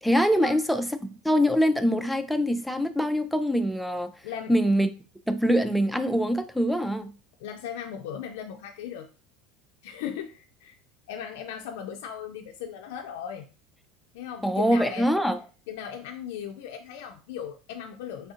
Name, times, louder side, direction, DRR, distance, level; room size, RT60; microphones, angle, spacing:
voice 1, 0.0-0.9 1.2-4.1 4.5-4.9 5.3-7.1 14.4-15.4, equal, ahead, 0.3 m, -23 dB
voice 2, 4.2-4.6 7.4-9.1 9.8-10.7 11.1-13.5 14.1-15.1 15.7-18.3, left 8 dB, 80° left, 0.3 m, -37 dB
3.4 x 2.4 x 2.7 m
supercardioid pair, 115°, 0 cm